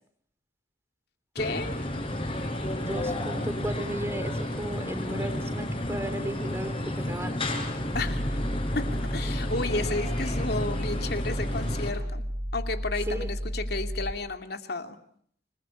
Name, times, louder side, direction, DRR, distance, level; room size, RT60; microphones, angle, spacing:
voice 1, 1.3-1.8 7.9-8.3 8.7-8.8 9.1-12.3 12.5-15.0, left 3 dB, 60° left, 6 dB, 2.7 m, -32 dB
sound 1, 1.4-11.9, left 1 dB, 30° left, 5.3 m, -32 dB
voice 2, 2.8-7.4 13.1-13.3, right 1 dB, 15° right, 9 dB, 3.6 m, -35 dB
sound 2, 7.9-14.1, equal, 85° right, 2.4 m, -32 dB
28.5 x 20.5 x 8.7 m, 0.65 s
head